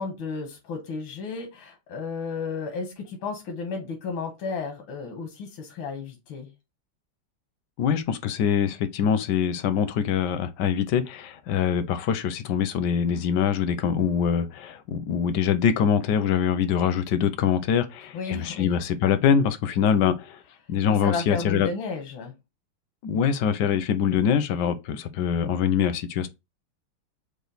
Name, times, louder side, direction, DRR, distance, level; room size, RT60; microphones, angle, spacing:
voice 1, 0.0-6.5 18.1-18.7 20.9-22.3, left 4 dB, 90° left, 1.8 m, -33 dB
voice 2, 7.8-20.4 20.7-21.7 23.0-26.3, left 8 dB, 75° left, 1.1 m, -24 dB
5.0 x 2.3 x 3.9 m
omnidirectional pair, 2.1 m